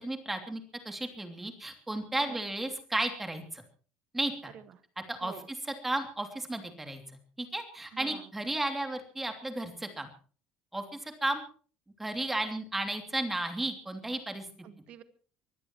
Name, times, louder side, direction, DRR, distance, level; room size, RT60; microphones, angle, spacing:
voice 1, 0.0-3.6 4.1-4.5 5.1-5.6 5.8-7.0 7.4-10.1 10.7-11.4 12.0-14.4, right 1 dB, 5° right, 6 dB, 2.8 m, -34 dB
voice 2, 4.4-4.8 5.2-5.5 7.9-8.3 14.6-15.0, right 10 dB, 45° right, 12 dB, 1.6 m, -48 dB
24.0 x 16.5 x 3.1 m, 0.40 s
cardioid pair, 165°, 3 cm